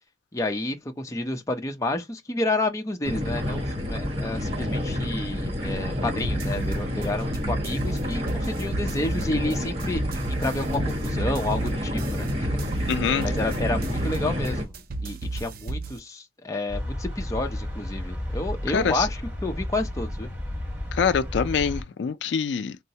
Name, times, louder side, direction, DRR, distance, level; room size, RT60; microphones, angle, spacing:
voice 1, 0.3-12.9 13.2-14.7 15.0-20.3, left 2 dB, 15° left, 0.5 m, -30 dB
sound 1, 3.0-14.6, left 1 dB, 35° right, 1.3 m, -29 dB
sound 2, 6.2-16.0, right 2 dB, 50° right, 0.4 m, -33 dB
voice 2, 12.9-13.3 18.7-19.1 20.9-22.8, left 6 dB, 70° left, 0.4 m, -25 dB
sound 3, 16.7-21.8, left 1 dB, 10° right, 1.0 m, -32 dB
3.9 x 2.1 x 2.7 m
head